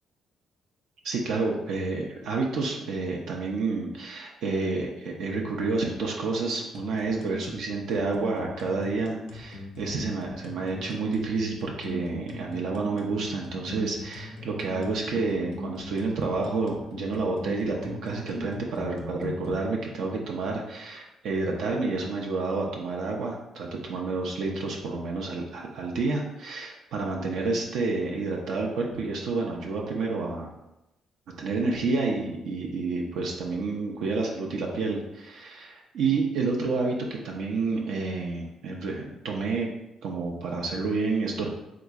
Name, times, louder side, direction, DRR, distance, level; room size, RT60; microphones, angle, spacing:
voice 1, 1.0-30.5 31.4-39.7 40.0-41.5, right 3 dB, 80° right, -1 dB, 0.5 m, -29 dB
sound 1, 6.7-19.6, left 2 dB, 80° left, 0.5 m, -39 dB
3.4 x 2.9 x 2.3 m, 0.92 s
cardioid pair, 90°, 0 cm